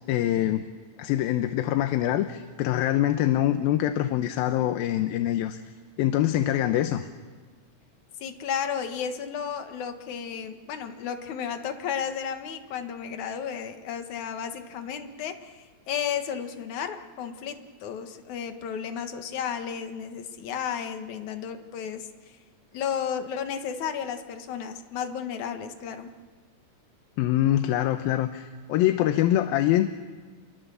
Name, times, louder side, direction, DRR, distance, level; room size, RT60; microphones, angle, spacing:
voice 1, 0.1-0.7 1.0-5.6 6.0-7.1 27.2-29.9, left 13 dB, 90° left, 8 dB, 2.7 m, -24 dB
voice 2, 8.2-22.1 22.7-26.1, left 7 dB, 60° left, 7 dB, 2.7 m, -33 dB
28.0 x 23.0 x 7.0 m, 1.4 s
omnidirectional pair, 4.1 m